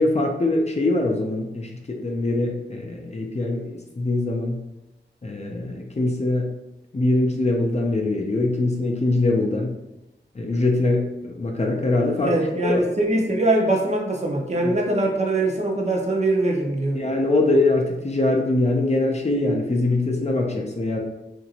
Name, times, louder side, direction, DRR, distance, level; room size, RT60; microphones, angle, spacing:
voice 1, 0.0-4.6 5.2-6.5 6.9-9.8 10.3-12.3 12.6-12.8 14.6-14.7 16.9-21.0, left 2 dB, 35° left, 1 dB, 0.5 m, -23 dB
voice 2, 12.2-17.0, right 2 dB, 35° right, -1 dB, 0.6 m, -22 dB
2.9 x 2.5 x 2.8 m, 0.92 s
wide cardioid pair, 55°, 19 cm